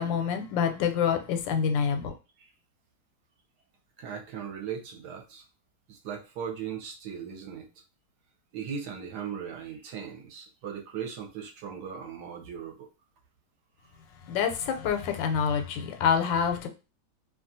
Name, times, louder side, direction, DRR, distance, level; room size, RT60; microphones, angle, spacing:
voice 1, 0.0-2.1 14.3-16.7, left 7 dB, 90° left, 1.3 m, -27 dB
voice 2, 4.0-5.4 5.9-7.7 8.5-12.9, right 7 dB, 70° right, 1.1 m, -38 dB
2.9 x 2.4 x 2.5 m
omnidirectional pair, 2.0 m